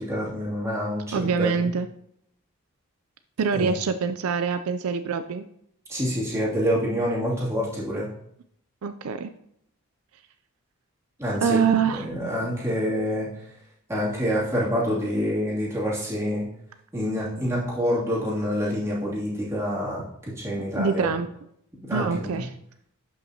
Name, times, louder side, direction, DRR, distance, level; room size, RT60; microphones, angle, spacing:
voice 1, 0.0-1.7 3.6-3.7 5.9-8.1 11.2-13.3 13.9-16.5 16.9-21.1 21.8-22.3, equal, 10° right, -8 dB, 2.6 m, -27 dB
voice 2, 1.1-1.9 3.4-5.5 8.0-8.1 8.8-9.3 11.4-12.1 20.8-21.3 21.9-22.5, right 6 dB, 70° right, 10 dB, 0.4 m, -25 dB
11.5 x 5.5 x 2.8 m, 0.73 s
head